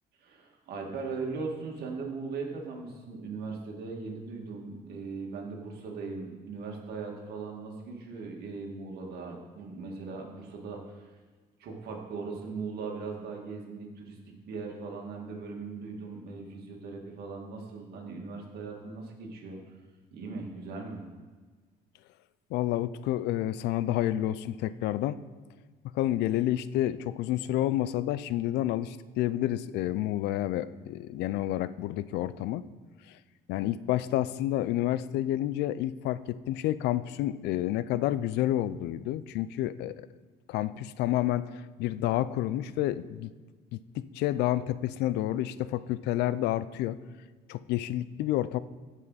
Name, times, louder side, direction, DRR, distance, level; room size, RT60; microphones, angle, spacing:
voice 1, 0.2-11.1 11.6-19.6 20.1-21.0, right 4 dB, 70° right, 0 dB, 2.1 m, -39 dB
voice 2, 22.5-25.2 25.9-32.6 33.5-40.1 40.5-43.3 43.7-47.0 47.5-48.6, left 13 dB, 80° left, 16 dB, 0.4 m, -29 dB
15.0 x 5.5 x 4.1 m, 1.4 s
cardioid pair, 110°, 17 cm